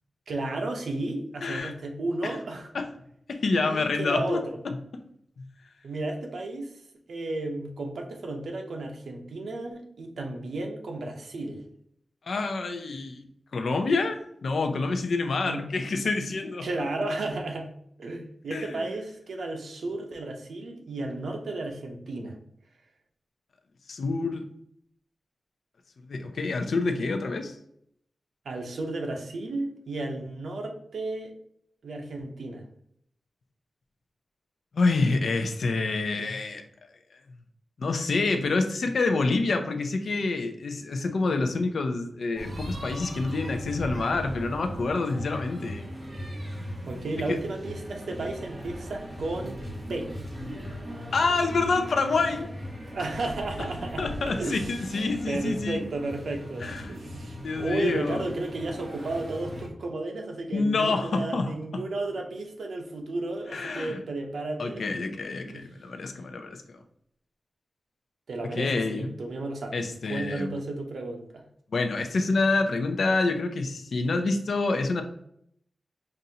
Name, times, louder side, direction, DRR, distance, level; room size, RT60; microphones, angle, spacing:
voice 1, 0.3-2.7 3.5-4.6 5.8-6.7 7.1-11.7 15.4-15.7 16.6-17.7 18.0-22.4 28.4-31.3 31.8-32.7 46.9-49.6 49.9-50.2 52.9-65.0 65.5-65.6 68.3-69.8 70.1-71.4, right 2 dB, 85° right, 2 dB, 0.7 m, -33 dB
voice 2, 1.4-1.7 2.2-2.4 2.7-2.9 3.3-4.7 12.3-13.3 13.5-16.8 18.5-18.8 23.9-24.4 26.0-27.6 34.7-36.6 37.8-45.9 47.3-47.4 51.1-52.5 54.0-55.8 56.6-57.0 57.4-58.2 60.5-61.8 63.5-64.0 64.6-66.8 68.4-69.1 69.7-70.6 71.7-75.0, left 3 dB, 70° left, 6 dB, 0.5 m, -27 dB
sound 1, 42.3-59.7, equal, 35° right, 1.2 m, -38 dB
5.4 x 2.6 x 2.8 m, 0.70 s
wide cardioid pair, 150°, 0 cm